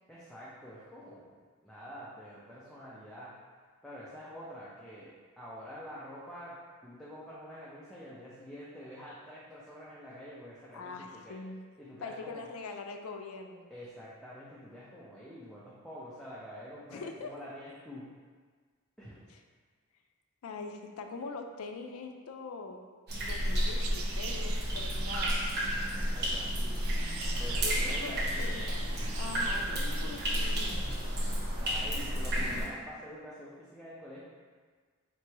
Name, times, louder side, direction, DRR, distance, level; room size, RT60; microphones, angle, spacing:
voice 1, 0.1-1.3 1.6-3.3 3.8-11.4 11.8-12.5 13.7-18.1 19.0-19.2 26.1-26.8 27.3-28.6 29.3-29.7 31.5-34.2, equal, ahead, -9 dB, 0.5 m, -47 dB
voice 2, 10.7-11.6 12.0-13.7 16.9-17.3 20.4-22.9 23.2-25.4 27.6-28.9 29.2-30.8, left 4 dB, 90° left, 5 dB, 0.4 m, -43 dB
sound 1, 23.1-32.7, equal, 50° right, 0.8 m, -31 dB
sound 2, 23.8-30.7, right 5 dB, 75° right, 0.4 m, -43 dB
3.0 x 2.9 x 4.5 m, 1.5 s
head